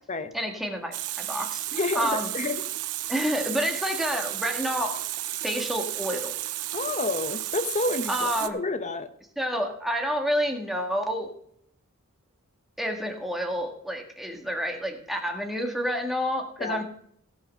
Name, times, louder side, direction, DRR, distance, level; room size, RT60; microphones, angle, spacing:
voice 1, 0.3-1.6 2.0-2.3 3.1-5.0 5.4-6.4 8.1-8.6 9.4-11.3 12.8-16.8, equal, ahead, 3 dB, 1.8 m, -29 dB
Water tap faucet, 0.9-8.5, right 15 dB, 85° right, 0.8 m, -33 dB
voice 2, 1.7-2.6 6.7-9.1 16.6-16.8, left 3 dB, 30° left, 10 dB, 1.0 m, -29 dB
16.5 x 5.9 x 6.4 m, 0.65 s
head